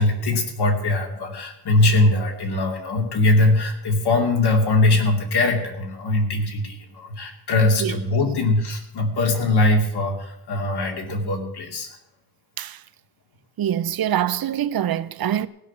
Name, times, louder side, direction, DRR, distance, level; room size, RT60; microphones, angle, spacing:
voice 1, 0.0-11.9, left 2 dB, 75° left, 2.6 m, -21 dB
voice 2, 13.6-15.5, right 10 dB, 60° right, 0.6 m, -24 dB
16.0 x 5.9 x 8.5 m
wide cardioid pair, 180°, 40 cm